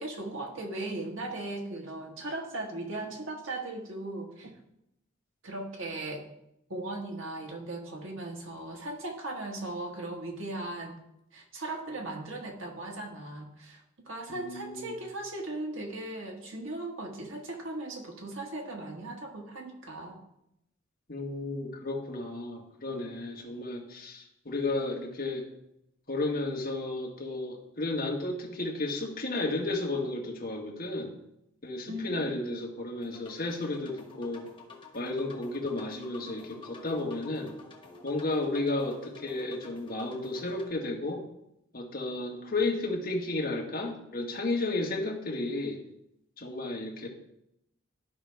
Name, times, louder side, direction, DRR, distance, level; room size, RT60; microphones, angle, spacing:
voice 1, 0.0-4.5 5.4-6.3 6.7-11.0 11.3-20.2 31.9-32.4, right 2 dB, 90° right, 1 dB, 1.6 m, -38 dB
voice 2, 14.3-14.9 21.1-25.5 26.1-31.1 31.6-34.5 34.9-37.5 38.0-41.2 41.7-45.8 46.4-47.1, left 2 dB, 50° left, 0 dB, 1.6 m, -33 dB
sound 1, 33.0-40.7, left 3 dB, 25° left, 1.1 m, -50 dB
12.5 x 5.2 x 3.5 m, 0.81 s
head